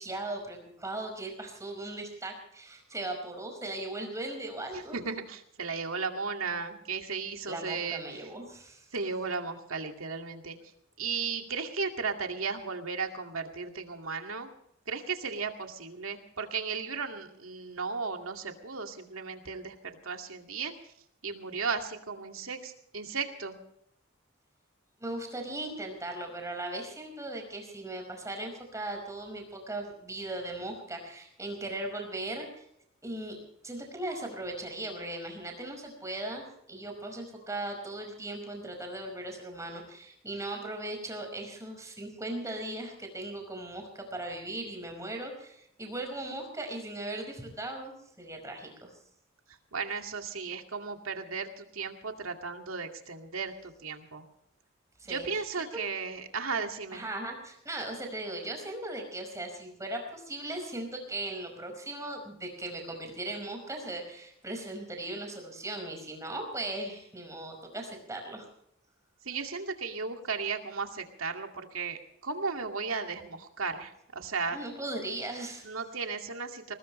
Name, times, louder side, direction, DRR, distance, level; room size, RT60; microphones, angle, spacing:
voice 1, 0.0-5.0 7.5-8.9 25.0-32.7 33.0-33.4 33.6-48.9 55.0-55.4 56.9-68.5 74.5-75.7, right 1 dB, 15° right, 3 dB, 5.3 m, -38 dB
voice 2, 4.7-8.0 8.9-10.6 11.0-14.5 14.9-20.7 21.2-23.6 49.5-54.2 55.1-57.1 69.2-74.6 75.6-76.7, right 5 dB, 90° right, 4 dB, 2.3 m, -35 dB
20.5 x 20.0 x 3.2 m, 0.73 s
head